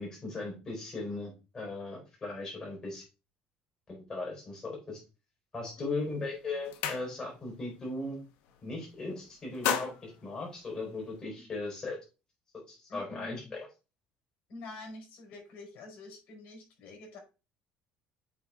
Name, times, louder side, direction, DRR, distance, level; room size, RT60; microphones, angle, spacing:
voice 1, 0.0-3.0 3.9-5.0 5.5-8.2 8.6-12.0 12.7-13.7, left 2 dB, 20° left, -2 dB, 3.8 m, -38 dB
sound 1, 5.8-6.0 6.4-7.5 7.9-8.1 8.4-9.0 9.3-11.2, left 8 dB, 85° left, 1.0 m, -36 dB
voice 2, 12.9-13.5 14.5-17.2, left 3 dB, 60° left, 1 dB, 4.3 m, -46 dB
8.4 x 3.8 x 3.6 m, 0.30 s
cardioid pair, 150°, 3 cm